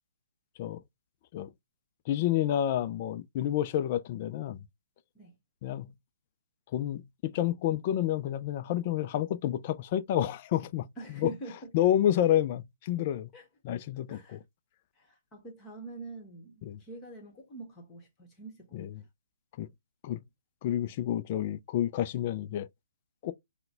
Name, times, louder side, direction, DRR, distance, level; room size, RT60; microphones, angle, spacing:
voice 1, 2.1-4.6 5.6-5.9 6.7-10.9 11.2-11.3 11.7-13.3 13.6-14.4 16.6-16.8 18.7-18.9 19.6-19.7 20.0-20.2 20.6-22.7 23.2-23.3, left 11 dB, 35° left, 0.4 m, -29 dB
voice 2, 11.0-11.7 13.3-13.5 14.1-14.4 15.0-18.9, right 3 dB, 20° left, 1.3 m, -45 dB
5.7 x 2.2 x 3.8 m
figure-of-eight pair, 130°, 0 cm